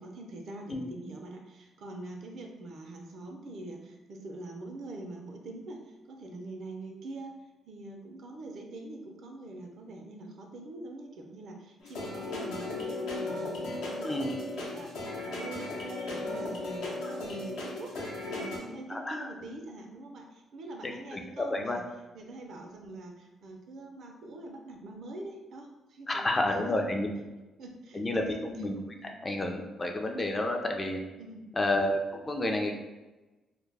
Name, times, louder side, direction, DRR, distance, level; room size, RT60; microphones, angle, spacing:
voice 1, 0.0-7.3 7.6-21.8 22.1-26.8 27.6-28.4 31.2-31.5, right 2 dB, 65° right, 2 dB, 0.4 m, -44 dB
sound 1, 11.8-18.6, left 2 dB, 80° left, 0.6 m, -36 dB
voice 2, 20.8-21.8 26.1-27.1 27.9-28.7 29.0-31.0 31.6-32.8, left 1 dB, 25° left, 3 dB, 0.3 m, -30 dB
2.1 x 2.0 x 3.2 m, 1.1 s
cardioid pair, 90°, 0 cm